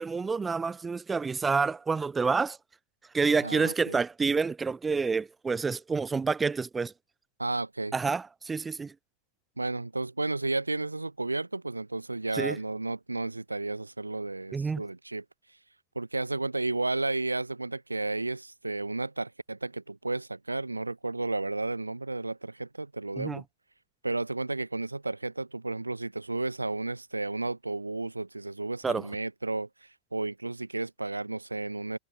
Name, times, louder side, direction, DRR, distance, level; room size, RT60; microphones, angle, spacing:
voice 1, 0.0-2.6 3.1-6.9 7.9-8.9 12.3-12.6 14.5-14.8 23.2-23.4 28.8-29.1, right 4 dB, 15° right, 0.4 m, -28 dB
voice 2, 3.4-4.0 7.4-7.9 9.6-15.2 15.9-23.4 24.0-32.0, right 2 dB, 80° right, 1.3 m, -33 dB
figure-of-eight pair, 90°, 0 cm